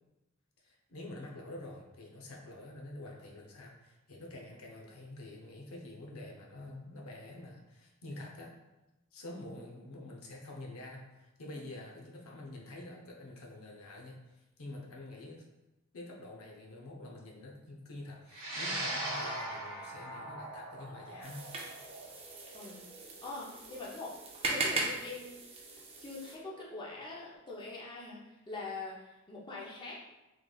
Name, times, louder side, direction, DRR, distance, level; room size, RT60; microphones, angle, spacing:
voice 1, 0.6-8.5 9.1-15.4 15.9-21.5, left 1 dB, 85° left, -1 dB, 0.7 m, -47 dB
sound 1, 18.3-26.9, right 1 dB, 70° right, 0.9 m, -42 dB
sound 2, 21.2-26.3, right 3 dB, 30° right, 0.5 m, -39 dB
voice 2, 22.5-24.2 24.4-25.4 26.0-30.0, left 3 dB, 20° left, -4 dB, 0.6 m, -43 dB
3.8 x 3.2 x 2.3 m, 0.99 s
head